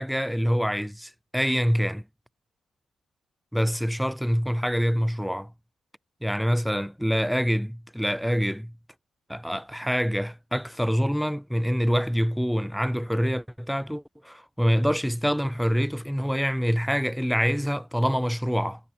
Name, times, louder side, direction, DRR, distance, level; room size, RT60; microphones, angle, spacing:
voice 1, 0.0-2.0 3.5-5.5 6.2-8.7 9.3-18.8, equal, ahead, 1.8 m, -26 dB
hypercardioid pair, 45°, 0 cm